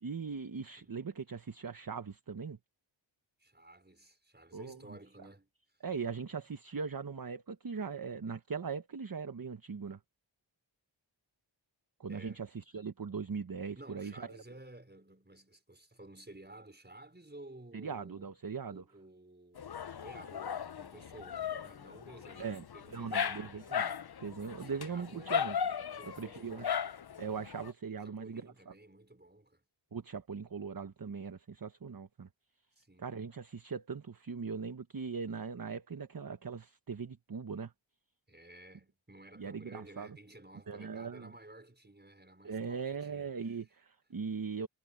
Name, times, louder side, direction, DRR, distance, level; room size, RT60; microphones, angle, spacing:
voice 1, 0.0-2.6 4.5-5.0 5.8-10.0 12.0-14.4 17.7-18.8 22.4-23.9 24.2-25.6 26.0-26.8 27.2-28.7 29.9-32.3 33.0-37.7 39.4-40.2 40.7-41.3 42.4-44.7, right 5 dB, 45° right, 1.1 m, -40 dB
voice 2, 3.4-5.5 12.1-12.5 13.7-18.3 18.7-23.8 24.4-25.4 26.0-27.0 28.0-29.6 32.8-33.1 38.3-43.4, right 1 dB, 20° right, 5.4 m, -54 dB
Dog, 19.6-27.7, left 8 dB, 50° left, 0.7 m, -37 dB
wide cardioid pair, 75°, 48 cm